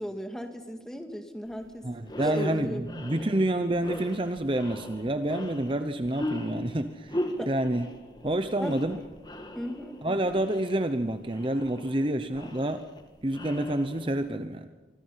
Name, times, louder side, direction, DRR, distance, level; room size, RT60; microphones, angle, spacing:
voice 1, 0.0-1.9 2.3-2.8 7.4-7.5 8.6-8.8 9.5-10.0, equal, 5° left, 5 dB, 2.0 m, -37 dB
sound 1, 1.5-1.6 2.0-14.4, left 1 dB, 25° left, 1.8 m, -38 dB
voice 2, 1.8-7.9 8.2-9.0 10.0-12.8 13.2-14.7, right 1 dB, 30° right, 9 dB, 0.8 m, -28 dB
25.0 x 24.5 x 5.7 m, 1.2 s
head